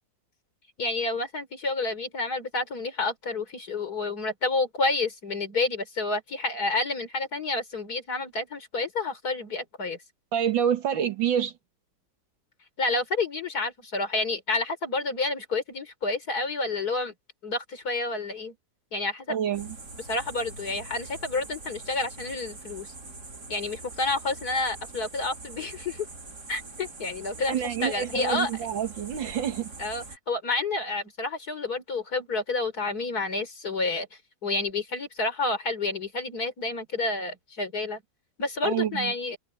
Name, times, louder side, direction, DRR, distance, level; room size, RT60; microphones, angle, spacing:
voice 1, 0.8-10.0 12.8-17.1 17.4-18.5 18.9-19.4 20.0-22.9 23.5-26.1 26.5-28.5 29.8-34.1 34.4-38.0 38.4-39.4, left 3 dB, 55° left, 4.1 m, -29 dB
voice 2, 10.3-11.5 19.3-19.8 27.5-29.7 38.6-39.1, right 9 dB, 80° right, 2.2 m, -27 dB
sound 1, 19.5-30.2, right 3 dB, 60° right, 3.8 m, -43 dB
omnidirectional pair, 2.0 m